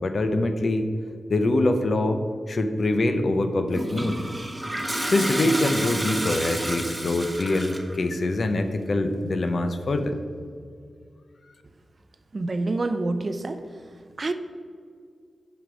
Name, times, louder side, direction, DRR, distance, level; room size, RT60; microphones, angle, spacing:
voice 1, 0.0-0.9 1.3-2.2 2.5-4.2 5.1-10.2, left 2 dB, 55° left, 8 dB, 0.6 m, -24 dB
Toilet flush, 3.7-8.0, right 1 dB, 15° right, 0.9 m, -30 dB
voice 2, 12.3-13.6 14.2-14.3, right 2 dB, 40° right, 10 dB, 0.5 m, -27 dB
7.8 x 5.1 x 5.1 m, 2.2 s
wide cardioid pair, 90°, 0 cm